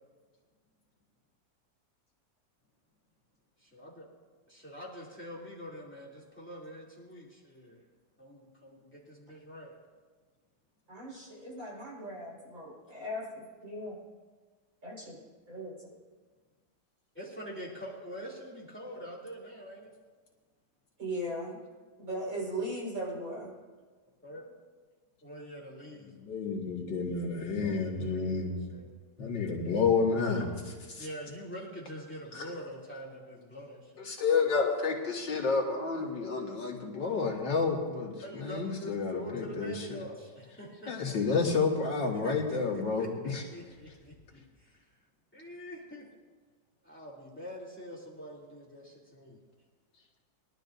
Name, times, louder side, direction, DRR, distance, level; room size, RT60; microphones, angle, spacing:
voice 1, 3.7-4.1 4.5-7.8 8.2-9.7 17.1-19.9 24.2-24.5 25.2-26.3 27.4-28.9 31.0-34.1 38.2-41.4 42.2-44.9 45.3-46.1 46.8-49.4, equal, 5° left, -4 dB, 2.8 m, -45 dB
voice 2, 10.9-14.0 14.8-15.2 15.5-15.7 21.0-21.6 22.0-23.5, right 1 dB, 45° right, -5 dB, 5.3 m, -38 dB
voice 3, 26.2-28.6 29.2-31.1 32.3-32.5 34.0-40.0 40.9-43.1 43.3-43.4, left 4 dB, 85° left, -1 dB, 2.5 m, -30 dB
22.5 x 12.0 x 2.7 m, 1.4 s
omnidirectional pair, 2.0 m